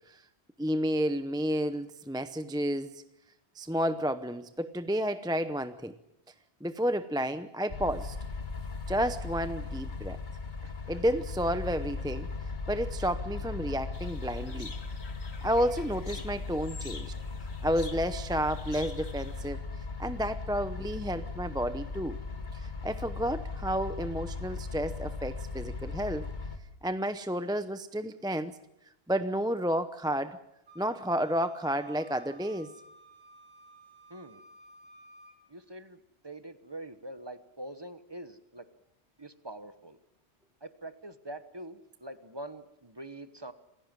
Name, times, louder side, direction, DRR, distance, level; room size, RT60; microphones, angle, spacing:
voice 1, 0.6-3.0 3.6-5.9 6.6-8.2 8.9-10.2 10.9-12.3 12.7-14.7 15.4-17.1 17.6-19.6 20.0-22.2 22.5-26.3 26.8-28.6 29.1-30.4 30.8-32.7, equal, 5° right, 10 dB, 0.7 m, -31 dB
sound 1, 7.7-26.6, left 4 dB, 45° left, 1.8 m, -38 dB
voice 2, 10.6-11.0 34.1-34.4 35.5-38.7 39.2-40.0 40.6-43.5, right 1 dB, 25° right, 11 dB, 1.2 m, -44 dB
sound 2, 13.9-19.5, left 4 dB, 75° left, 2.0 m, -49 dB
Wind instrument woodwind instrument, 30.7-35.4, right 1 dB, 70° right, 6.6 m, -55 dB
27.0 x 16.0 x 7.5 m, 0.83 s
omnidirectional pair, 1.1 m